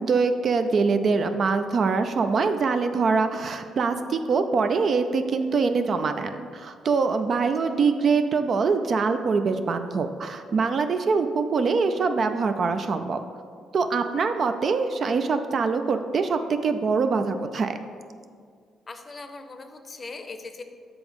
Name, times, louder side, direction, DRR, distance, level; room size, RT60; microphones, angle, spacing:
voice 1, 0.0-13.2 13.7-17.8, right 4 dB, 50° right, 8 dB, 0.4 m, -24 dB
voice 2, 7.3-7.7 18.9-20.6, left 3 dB, 35° left, 7 dB, 0.6 m, -40 dB
6.8 x 3.5 x 5.3 m, 2.1 s
cardioid pair, 90°, 0 cm